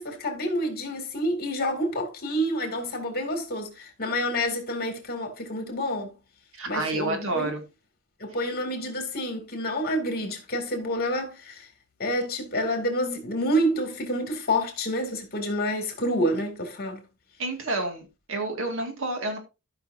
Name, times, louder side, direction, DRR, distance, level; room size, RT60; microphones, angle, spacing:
voice 1, 0.0-6.1 6.7-7.5 8.2-11.7 12.0-17.0, equal, 45° left, 2.6 m, -28 dB
voice 2, 6.6-7.6 17.4-19.4, right 2 dB, 65° right, 2.1 m, -29 dB
14.5 x 5.7 x 2.7 m
head